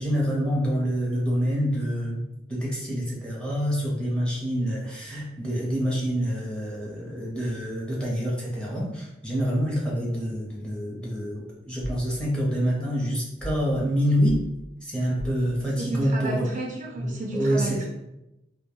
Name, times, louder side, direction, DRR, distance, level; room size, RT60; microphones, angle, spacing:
voice 1, 0.0-2.2 2.5-14.4 14.8-16.5 17.0-17.9, equal, 5° left, -5 dB, 0.7 m, -26 dB
sound 1, 11.8-12.1 13.4-13.7 14.2-14.5 15.2-15.5, equal, 50° left, 0.5 m, -36 dB
voice 2, 15.8-17.9, right 2 dB, 45° right, -1 dB, 0.4 m, -33 dB
2.2 x 2.2 x 3.0 m, 0.91 s
head